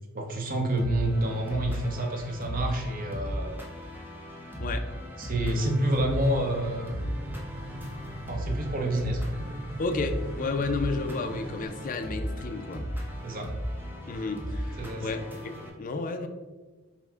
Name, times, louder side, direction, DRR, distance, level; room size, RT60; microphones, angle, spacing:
voice 1, 0.1-3.7 5.2-7.1 8.3-9.3 13.2-13.5 14.8-15.2, right 1 dB, 40° right, 3 dB, 0.7 m, -29 dB
sound 1, 0.8-15.7, equal, 10° right, 0.7 m, -36 dB
sound 2, 5.8-11.7, right 1 dB, 70° right, 0.9 m, -41 dB
voice 2, 9.8-12.8 14.1-16.3, left 3 dB, 40° left, 7 dB, 0.4 m, -32 dB
5.6 x 2.1 x 4.4 m, 1.2 s
head